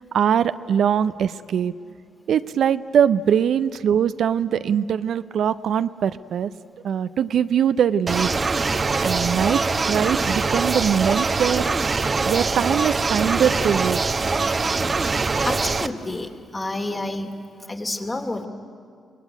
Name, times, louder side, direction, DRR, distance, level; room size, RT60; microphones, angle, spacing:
voice 1, 0.0-1.7 2.3-6.5 6.8-8.3 9.0-9.6 9.9-11.7 12.3-14.0, right 8 dB, 70° right, 13 dB, 0.5 m, -22 dB
sound 1, 8.1-15.9, right 4 dB, 40° right, 0.9 m, -23 dB
voice 2, 15.4-17.4 17.7-18.4, left 2 dB, 30° left, 5 dB, 2.5 m, -29 dB
23.5 x 19.0 x 9.3 m, 2.2 s
hypercardioid pair, 45°, 0 cm